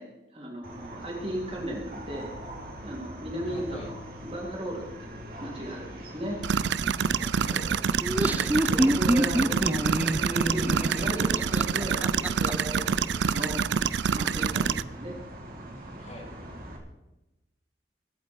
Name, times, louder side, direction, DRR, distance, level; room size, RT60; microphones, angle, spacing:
voice 1, 0.0-2.3 2.8-6.4 6.9-7.1 8.2-13.6 14.1-15.1 15.5-15.8, equal, 30° right, -4 dB, 3.5 m, -36 dB
sound 1, 0.6-16.8, equal, 50° right, 3.2 m, -41 dB
voice 2, 3.4-3.9 7.1-8.3 14.6-15.0 16.0-16.3, left 1 dB, 35° left, 1 dB, 3.0 m, -45 dB
sound 2, 6.4-14.8, right 6 dB, 75° right, 0.4 m, -27 dB
Laughter, 7.9-12.5, equal, 10° right, 0.5 m, -26 dB
24.5 x 8.4 x 4.7 m, 0.97 s
head